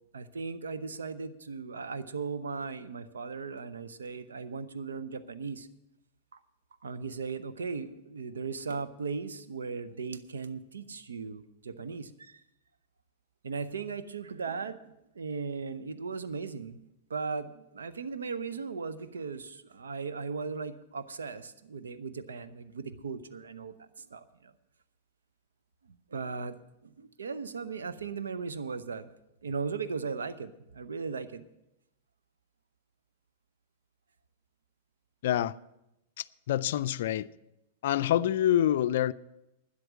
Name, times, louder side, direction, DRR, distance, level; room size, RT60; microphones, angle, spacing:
voice 1, 0.1-5.7 6.3-6.4 6.8-12.4 13.4-16.8 17.1-24.5 25.9-26.6 26.8-29.1 29.4-31.4, right 5 dB, 80° right, 0.8 m, -37 dB
voice 2, 35.2-35.5 36.2-37.3 37.8-39.1, left 11 dB, 65° left, 0.4 m, -26 dB
12.0 x 10.0 x 6.1 m
hypercardioid pair, 100°, 0 cm